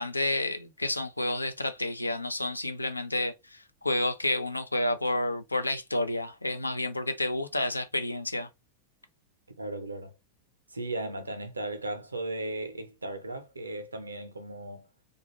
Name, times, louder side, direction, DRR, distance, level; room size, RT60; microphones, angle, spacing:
voice 1, 0.0-8.5, left 1 dB, 85° left, 0.4 m, -30 dB
voice 2, 9.6-10.1 10.7-14.9, right 2 dB, 80° right, 0.6 m, -36 dB
2.4 x 2.3 x 3.0 m
figure-of-eight pair, 90°, 0 cm